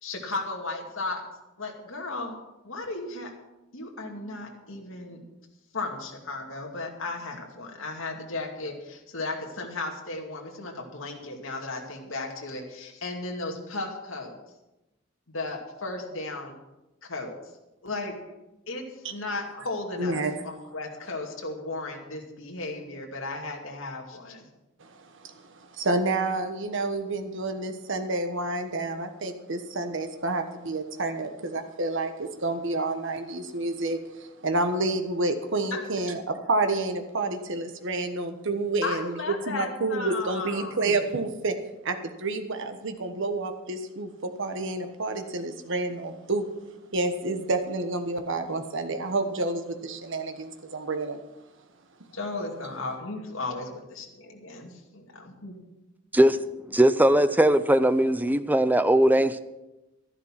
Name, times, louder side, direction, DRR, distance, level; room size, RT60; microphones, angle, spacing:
voice 1, 0.0-1.2 1.6-2.4 2.6-3.3 3.7-5.2 5.7-14.3 15.3-16.6 17.1-17.3 17.8-18.1 18.7-24.5 35.7-35.8 36.1-36.2 38.8-40.9 52.1-55.6, left 3 dB, 70° left, 1 dB, 2.4 m, -35 dB
voice 2, 20.0-20.3 24.8-24.9 25.2-39.2 39.5-41.5 41.8-46.4 46.9-51.2, right 2 dB, 65° right, 7 dB, 1.3 m, -29 dB
voice 3, 56.7-59.4, right 1 dB, 10° right, 12 dB, 0.6 m, -20 dB
12.5 x 11.0 x 5.9 m, 0.98 s
head